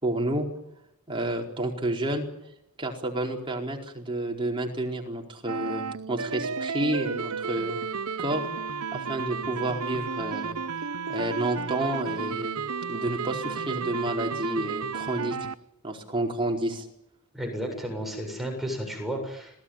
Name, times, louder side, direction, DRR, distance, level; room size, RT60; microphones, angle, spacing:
voice 1, 0.0-0.5 1.1-2.3 2.8-7.8 8.2-8.4 8.9-12.6 12.9-15.4 15.8-16.9, right 1 dB, 25° right, 1 dB, 4.6 m, -30 dB
sound 1, 5.5-15.5, right 5 dB, 80° right, 0.9 m, -32 dB
voice 2, 17.3-19.6, equal, ahead, 2 dB, 7.5 m, -33 dB
26.5 x 18.5 x 9.1 m, 0.79 s
head